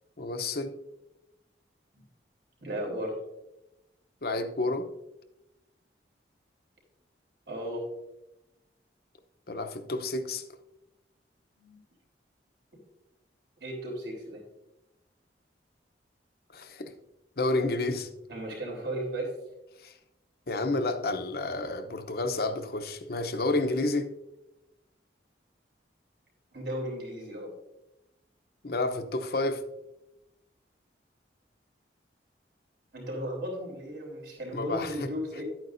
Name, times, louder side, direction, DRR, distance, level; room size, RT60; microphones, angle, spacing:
voice 1, 0.2-0.7 4.2-4.9 9.5-10.4 16.5-16.9 17.4-18.1 19.8-19.9 20.5-24.1 28.6-29.6 34.5-35.1, left 2 dB, 60° left, 8 dB, 0.8 m, -30 dB
voice 2, 2.6-3.2 7.5-7.8 11.6-11.8 13.6-14.4 18.3-19.3 26.5-27.5 32.9-35.4, equal, 75° right, -1 dB, 3.4 m, -35 dB
11.5 x 9.0 x 2.6 m, 0.93 s
head